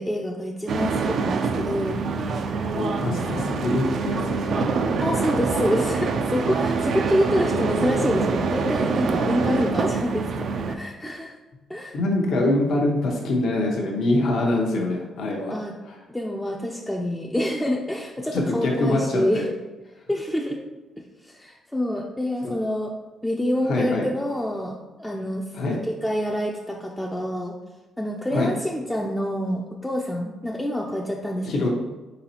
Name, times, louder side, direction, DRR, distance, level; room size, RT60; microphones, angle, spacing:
voice 1, 0.0-2.0 5.0-11.3 11.7-12.0 15.5-15.7 16.1-19.5 20.1-20.6 21.0-22.9 23.2-25.5 25.9-27.6 28.0-31.7, equal, 5° left, -1 dB, 0.4 m, -27 dB
sound 1, 0.7-10.8, right 4 dB, 60° right, 0.3 m, -25 dB
voice 2, 2.7-4.7 8.0-8.2 11.9-15.5 15.9-16.0 18.3-19.4 22.4-22.5 23.7-24.1 25.5-25.8 28.3-28.5 31.4-31.7, left 2 dB, 70° left, -1 dB, 0.7 m, -24 dB
4.0 x 4.0 x 2.9 m, 1.2 s
cardioid pair, 90°, 0 cm